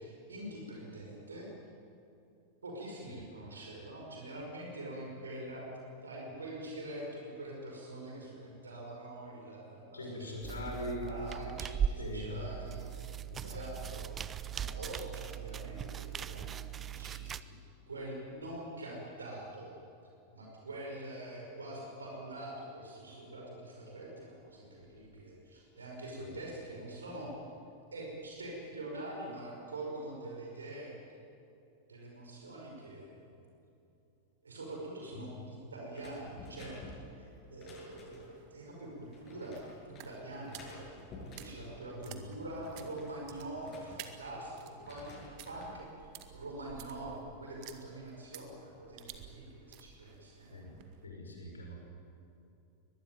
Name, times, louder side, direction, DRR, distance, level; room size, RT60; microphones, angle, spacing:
voice 1, 0.0-1.5 2.6-5.7 6.0-13.1 13.4-14.3 14.6-19.8 20.3-27.3 27.9-31.0 31.9-33.3 34.4-36.8 37.1-41.0 41.4-50.6, right 1 dB, 75° right, -1 dB, 5.5 m, -45 dB
voice 2, 9.9-11.1 12.0-12.5 13.3-13.6 26.2-26.3 35.1-35.3 42.1-42.2 50.5-50.7 51.0-51.8, left 2 dB, 75° left, 1 dB, 6.0 m, -42 dB
sound 1, 10.4-17.4, right 9 dB, 25° right, 0.7 m, -39 dB
sound 2, 35.9-38.4 39.1-40.1 40.5-41.7 42.2-44.4 44.7-45.8 46.2-46.7, left 2 dB, 30° left, 7.7 m, -52 dB
sound 3, 38.0-51.0, right 10 dB, 45° right, 2.0 m, -54 dB
23.5 x 21.0 x 9.3 m, 2.7 s
figure-of-eight pair, 90°, 0 cm